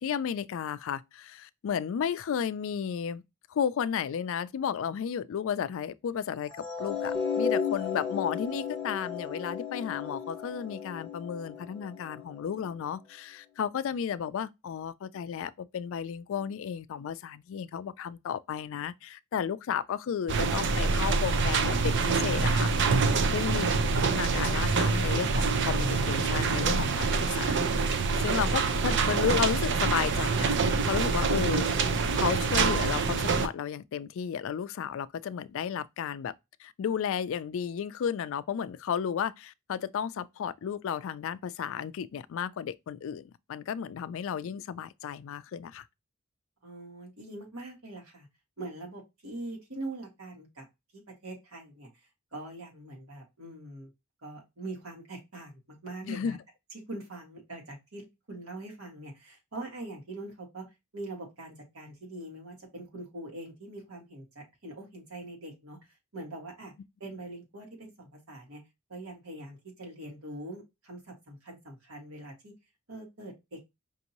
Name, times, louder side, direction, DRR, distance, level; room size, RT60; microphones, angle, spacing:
voice 1, 0.0-3.2 3.5-6.5 6.8-22.7 23.3-23.8 24.1-27.7 28.2-30.6 30.9-31.7 32.1-36.3 36.6-45.8 56.0-56.4, left 8 dB, 65° left, 0.3 m, -33 dB
sound 1, 6.5-12.7, left 6 dB, 5° left, 1.0 m, -34 dB
sound 2, 20.3-33.5, right 4 dB, 60° right, 0.5 m, -26 dB
voice 2, 46.6-48.3 48.6-50.7 51.1-51.9 52.3-53.9 54.2-56.4 56.9-60.7 60.9-65.8 66.1-66.7 67.0-68.6 68.9-72.5 72.9-73.7, right 2 dB, 85° right, 2.0 m, -43 dB
5.2 x 2.7 x 2.9 m
head